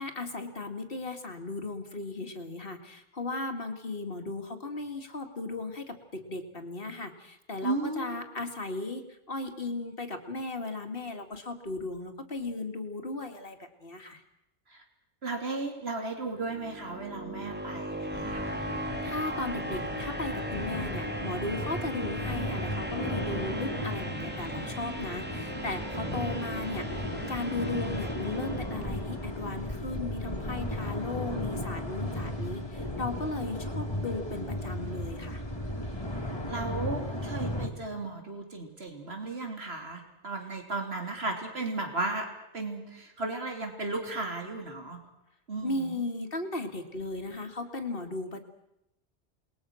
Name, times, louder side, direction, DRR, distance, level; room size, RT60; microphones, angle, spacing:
voice 1, 0.0-14.2 19.0-35.4 45.6-48.4, left 2 dB, 55° left, 6 dB, 2.4 m, -36 dB
voice 2, 7.6-8.2 14.7-14.8 15.2-18.6 36.5-42.3 42.5-45.0 45.5-46.0, right 3 dB, 65° right, 4 dB, 3.6 m, -35 dB
sound 1, 16.3-29.3, equal, 10° right, 2.2 m, -38 dB
sound 2, 18.1-37.7, left 1 dB, 20° left, 2.6 m, -35 dB
28.0 x 21.0 x 6.4 m, 0.85 s
omnidirectional pair, 1.2 m